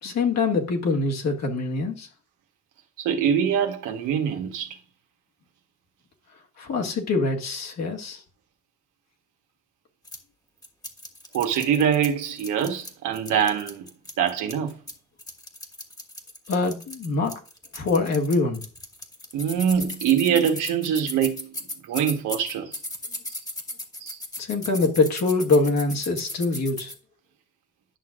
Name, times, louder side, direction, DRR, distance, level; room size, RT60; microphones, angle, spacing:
voice 1, 0.0-2.1 6.6-8.2 16.5-17.4 17.7-18.6 24.4-26.9, left 3 dB, 60° left, 1.9 m, -24 dB
voice 2, 3.0-4.8 11.3-13.9 14.2-14.8 19.3-21.5 21.9-22.7 23.3-23.4 24.0-24.2, right 8 dB, 90° right, 1.3 m, -24 dB
sound 1, 10.0-10.2 10.6-12.1 12.4-14.9 15.2-26.9, left 1 dB, 10° left, 1.4 m, -36 dB
11.0 x 6.1 x 2.5 m
cardioid pair, 90°, 30 cm